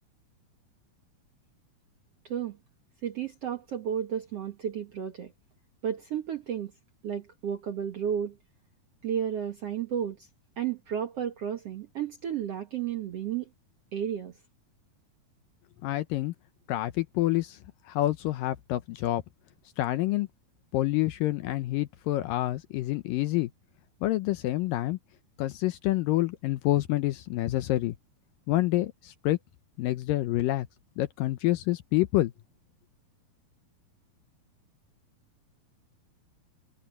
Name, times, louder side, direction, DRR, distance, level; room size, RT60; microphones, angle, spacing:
voice 1, 2.2-2.6 3.0-5.3 5.8-6.7 7.0-8.4 9.0-10.3 10.6-13.5 13.9-14.4, right 9 dB, 60° right, 1.6 m, -32 dB
voice 2, 15.8-16.3 16.7-17.6 17.9-19.2 19.8-20.3 20.7-23.5 24.0-25.0 25.4-28.0 28.5-29.4 29.8-30.7 31.0-32.3, left 16 dB, 75° left, 2.2 m, -27 dB
omnidirectional pair, 4.5 m